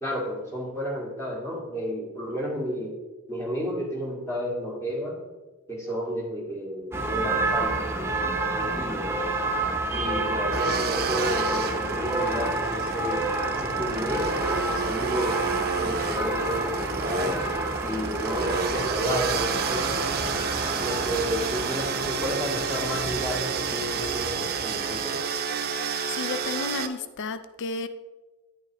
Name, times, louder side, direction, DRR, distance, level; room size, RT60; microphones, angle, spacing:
voice 1, 0.0-2.9 3.3-5.2 5.7-9.1 9.9-15.4 15.8-17.4 17.8-20.0 20.8-25.2, equal, 15° left, -3 dB, 2.0 m, -32 dB
sound 1, 6.9-25.1, right 2 dB, 10° right, 0.8 m, -29 dB
sound 2, 10.5-26.9, right 5 dB, 45° right, 0.6 m, -30 dB
voice 2, 26.1-27.9, left 4 dB, 55° left, 12 dB, 0.4 m, -32 dB
9.7 x 8.2 x 3.0 m, 1.2 s
head